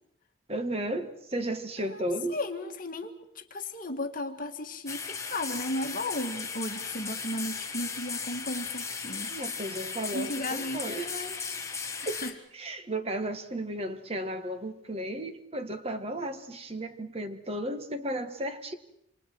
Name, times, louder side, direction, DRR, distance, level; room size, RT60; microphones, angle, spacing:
voice 1, 0.5-2.4 9.3-11.1 12.0-12.2 12.5-18.7, right 1 dB, 30° right, 7 dB, 1.8 m, -34 dB
voice 2, 1.9-9.3 10.1-11.4 12.0-12.3, left 1 dB, 45° left, 6 dB, 1.8 m, -35 dB
sound 1, 4.9-12.3, left 5 dB, 15° left, 1.7 m, -36 dB
27.5 x 27.0 x 4.7 m, 0.75 s
head